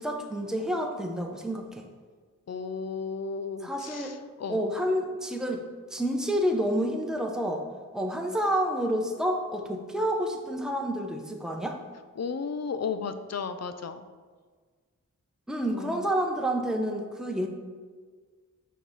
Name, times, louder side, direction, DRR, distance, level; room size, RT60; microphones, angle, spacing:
voice 1, 0.0-1.8 3.6-4.2 4.5-5.6 5.9-7.6 7.9-11.8 15.5-17.5, equal, ahead, 2 dB, 0.8 m, -29 dB
voice 2, 2.5-4.6 12.2-14.0 15.7-16.1, left 5 dB, 55° left, 10 dB, 0.5 m, -34 dB
5.9 x 4.6 x 4.0 m, 1.5 s
wide cardioid pair, 55°, 32 cm